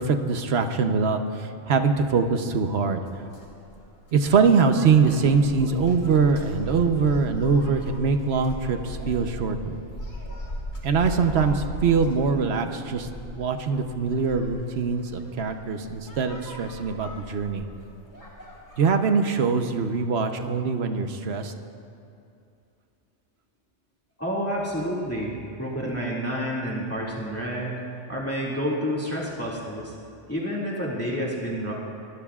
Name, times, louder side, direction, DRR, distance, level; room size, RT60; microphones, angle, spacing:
voice 1, 0.0-3.0 4.1-9.8 10.8-13.1 13.3-17.6 18.8-21.5, right 5 dB, 60° right, 6 dB, 1.1 m, -23 dB
sound 1, 3.1-18.9, left 1 dB, 60° left, 2.9 m, -38 dB
voice 2, 24.2-27.7 28.1-29.9 30.3-31.7, equal, 10° left, -5 dB, 2.2 m, -29 dB
24.5 x 20.5 x 2.4 m, 2.5 s
omnidirectional pair, 1.3 m